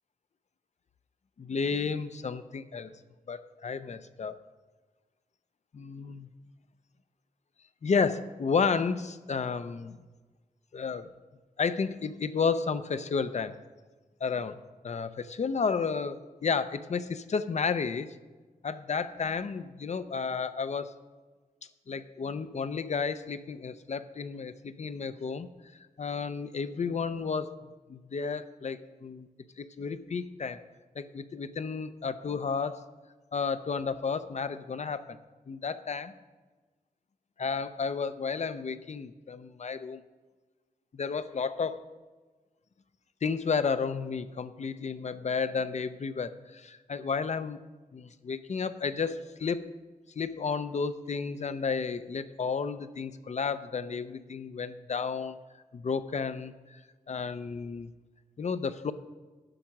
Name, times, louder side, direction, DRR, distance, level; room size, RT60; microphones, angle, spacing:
voice 1, 1.4-2.9 3.3-4.4 5.7-6.3 7.8-10.0 10.7-11.1 11.6-13.6 14.2-14.6 14.8-18.1 18.6-20.9 21.9-25.5 26.0-27.6 27.9-29.3 29.6-30.6 31.0-32.8 33.3-35.2 35.5-36.1 37.4-40.0 40.9-41.8 43.2-47.6 47.9-49.7 50.2-55.4 55.7-56.8 57.1-57.9 58.4-58.9, left 5 dB, 50° left, 12 dB, 0.5 m, -32 dB
10.0 x 6.2 x 5.9 m, 1.3 s
wide cardioid pair, 100°, 15 cm